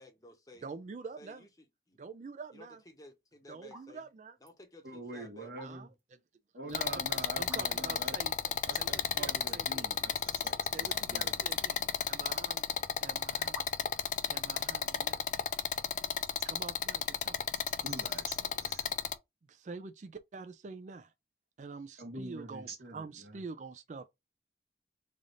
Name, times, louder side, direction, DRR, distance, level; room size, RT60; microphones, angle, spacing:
voice 1, 0.0-0.7 1.2-2.0 2.5-4.0 4.4-5.8, left 2 dB, 20° left, 0.8 m, -55 dB
voice 2, 0.6-1.5 2.0-2.8 3.5-4.4 5.6-5.9 6.7-9.9 10.7-11.8 12.1-12.7 13.0-13.7 14.3-15.2 16.4-17.4 19.5-21.1 21.6-24.1, right 4 dB, 40° right, 0.3 m, -46 dB
sound 1, 3.7-3.9 4.2-4.6 5.3-6.1 6.4-6.5 7.4-8.0 8.5-8.6 8.8-8.9 9.4-9.8 10.2-10.7 11.0-12.3 13.0-13.1 13.5-14.1, right 1 dB, 15° right, 0.9 m, -52 dB
voice 3, 4.8-5.9 6.5-8.2 8.7-12.3 17.8-18.9 22.0-23.4, right 2 dB, 60° right, 1.4 m, -45 dB
sound 2, 6.7-19.1, left 7 dB, 45° left, 0.4 m, -33 dB
3.4 x 2.5 x 3.9 m
head